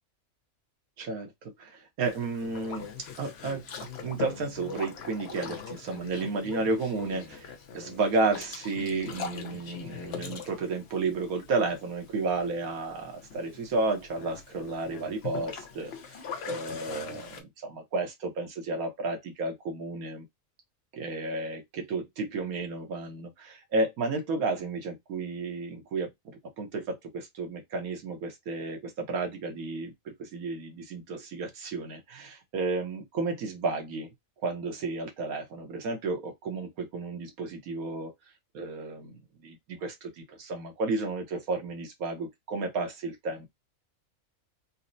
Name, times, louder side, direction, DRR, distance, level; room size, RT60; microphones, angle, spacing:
voice 1, 1.0-2.9 3.2-3.6 4.0-16.2 16.5-20.3 20.9-34.1 34.4-38.1 38.5-43.5, right 3 dB, 85° right, 1.4 m, -32 dB
Boat Water vehicle, 2.0-17.4, left 6 dB, 55° left, 0.8 m, -42 dB
4.0 x 2.1 x 2.6 m
omnidirectional pair, 1.5 m